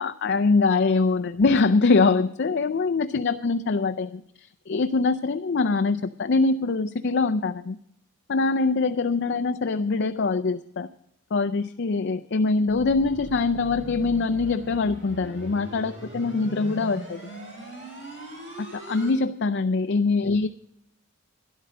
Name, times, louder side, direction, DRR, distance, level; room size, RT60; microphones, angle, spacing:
voice 1, 0.0-4.2 4.7-7.8 8.3-10.9 11.3-17.2 18.6-20.5, left 3 dB, 50° left, 9 dB, 0.5 m, -23 dB
sound 1, 12.7-19.1, right 1 dB, 35° right, 6.9 m, -40 dB
12.5 x 11.0 x 6.3 m, 0.76 s
head